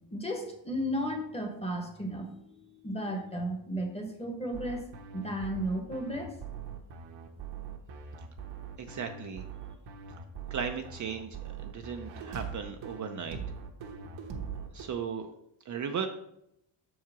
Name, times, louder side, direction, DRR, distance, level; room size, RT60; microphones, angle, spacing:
voice 1, 0.0-4.9 5.1-6.3, equal, 15° left, 3 dB, 1.3 m, -34 dB
sound 1, 4.5-14.8, right 6 dB, 70° right, 1.2 m, -42 dB
voice 2, 8.8-9.4 10.5-13.4 14.7-15.3 15.7-16.1, right 7 dB, 40° right, 5 dB, 0.6 m, -36 dB
6.3 x 4.7 x 5.8 m, 0.76 s
cardioid pair, 145°, 45 cm